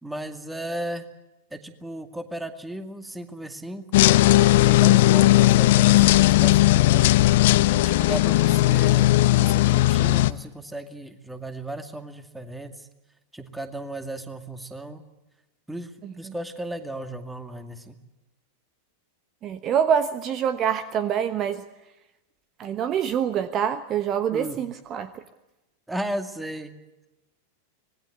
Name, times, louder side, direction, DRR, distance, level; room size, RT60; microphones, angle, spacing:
voice 1, 0.0-1.1 1.5-3.8 4.7-7.2 7.7-12.9 13.3-15.0 15.7-15.9 16.2-18.0 24.3-24.6 25.9-26.7, right 1 dB, 5° right, 8 dB, 2.3 m, -35 dB
sound 1, 3.9-10.3, left 16 dB, 55° left, 0.8 m, -17 dB
voice 2, 19.4-21.6 22.6-25.2, right 8 dB, 30° right, 12 dB, 1.1 m, -25 dB
25.5 x 20.5 x 8.0 m, 0.97 s
figure-of-eight pair, 90°, 0 cm